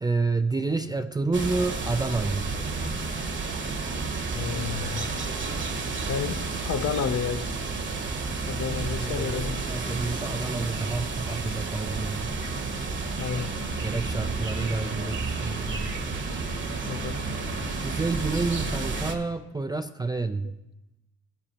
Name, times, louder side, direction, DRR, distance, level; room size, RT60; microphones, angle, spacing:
voice 1, 0.0-2.5 8.9-12.3 13.8-15.9 17.8-20.5, right 3 dB, 15° right, 8 dB, 0.3 m, -29 dB
sound 1, 1.3-19.2, right 3 dB, 40° right, 1.1 m, -31 dB
voice 2, 4.3-5.1 6.1-6.4 6.6-7.4 8.5-9.6 13.2-13.5 15.5-15.6 16.9-17.2, left 7 dB, 50° left, 11 dB, 0.6 m, -30 dB
15.0 x 6.9 x 2.9 m, 0.93 s
cardioid pair, 90°, 30 cm